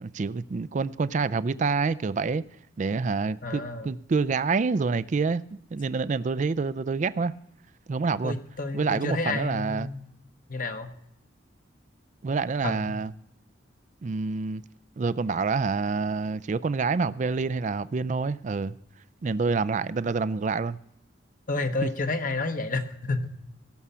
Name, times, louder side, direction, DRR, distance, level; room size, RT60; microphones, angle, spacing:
voice 1, 0.0-2.4 2.8-5.4 5.7-7.3 7.9-8.4 8.7-9.9 12.2-13.1 14.0-14.6 15.0-18.8 19.2-20.8 21.8-21.9, right 4 dB, 40° right, 0.4 m, -27 dB
voice 2, 3.4-3.9 8.2-10.0 10.5-10.9 12.6-12.9 21.5-23.3, left 3 dB, 45° left, 1.1 m, -30 dB
17.5 x 7.2 x 5.6 m
head